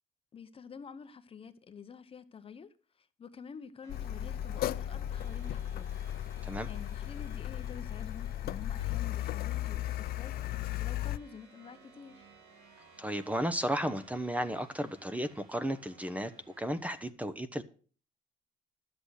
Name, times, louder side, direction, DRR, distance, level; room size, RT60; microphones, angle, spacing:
voice 1, 0.3-6.0 6.4-12.3, left 6 dB, 35° left, 0.9 m, -49 dB
sound 1, 3.8-17.1, right 4 dB, 90° right, 3.3 m, -59 dB
Car, 3.9-11.2, left 13 dB, 65° left, 0.6 m, -36 dB
voice 2, 13.0-16.3 16.6-17.6, equal, 10° right, 0.9 m, -34 dB
11.5 x 7.9 x 6.4 m
cardioid pair, 110°, 17 cm